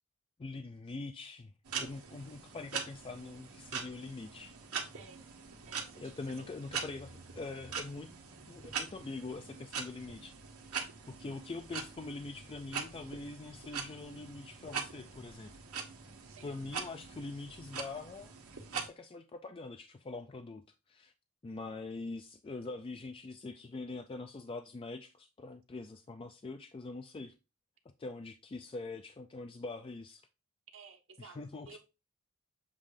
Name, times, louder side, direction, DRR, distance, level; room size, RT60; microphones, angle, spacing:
voice 1, 0.4-4.6 6.0-8.1 8.5-10.3 11.1-15.5 16.4-18.3 18.7-21.1 21.4-27.3 27.9-30.3 31.2-31.8, left 3 dB, 25° left, 0.4 m, -44 dB
sound 1, 1.7-18.9, right 6 dB, 80° right, 1.5 m, -43 dB
voice 2, 4.9-5.3 5.6-6.7 16.2-16.6 16.8-16.9 30.7-31.8, right 5 dB, 65° right, 1.0 m, -55 dB
7.5 x 2.7 x 4.9 m
head